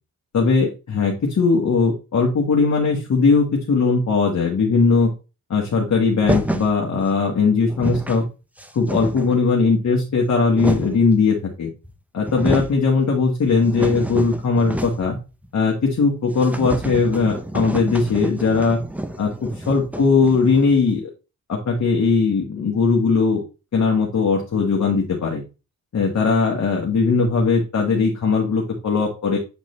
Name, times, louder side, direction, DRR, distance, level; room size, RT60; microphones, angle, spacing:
voice 1, 0.3-5.1 5.5-8.2 8.7-11.7 12.1-15.2 15.5-18.8 19.2-19.3 19.7-21.1 21.5-23.4 23.7-25.4 25.9-29.4, left 4 dB, 50° left, -1 dB, 1.4 m, -19 dB
sound 1, 6.2-6.8 7.4-7.5 7.7-8.2 8.6-9.5 10.1-11.1 11.8-11.9 12.2-12.8 13.2-15.2 15.4-15.5 15.9-16.0 16.3-20.8, right 1 dB, 5° right, 0.6 m, -28 dB
8.2 x 3.7 x 3.1 m, 0.31 s
cardioid pair, 90°, 35 cm